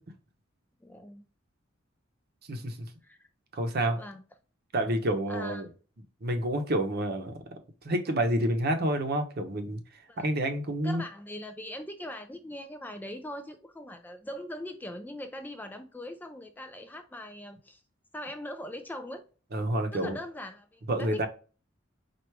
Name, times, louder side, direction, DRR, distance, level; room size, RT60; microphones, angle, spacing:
voice 1, 0.8-1.2 3.0-3.2 3.9-4.2 5.3-5.7 10.1-10.3 10.8-17.8 18.1-19.2 19.9-21.3, left 1 dB, 10° left, 0.3 m, -41 dB
voice 2, 3.5-4.0 4.7-5.7 6.2-7.3 7.8-9.8 10.2-11.0 19.5-20.2 20.9-21.3, right 1 dB, 50° right, 0.8 m, -28 dB
4.6 x 2.4 x 4.6 m
head